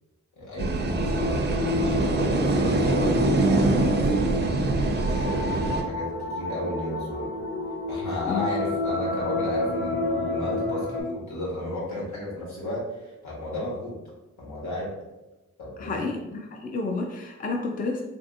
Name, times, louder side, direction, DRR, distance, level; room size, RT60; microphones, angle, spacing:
voice 1, 0.3-7.3 7.9-14.0 14.4-14.9 15.6-16.1, left 1 dB, 75° left, -6 dB, 1.5 m, -34 dB
sound 1, 0.6-5.8, right 2 dB, 35° right, 0.4 m, -24 dB
sound 2, 0.8-11.0, left 2 dB, 50° left, 1.2 m, -30 dB
voice 2, 15.8-18.0, left 3 dB, 30° left, 1 dB, 0.4 m, -30 dB
3.3 x 2.7 x 2.5 m, 1.0 s
wide cardioid pair, 85°, 29 cm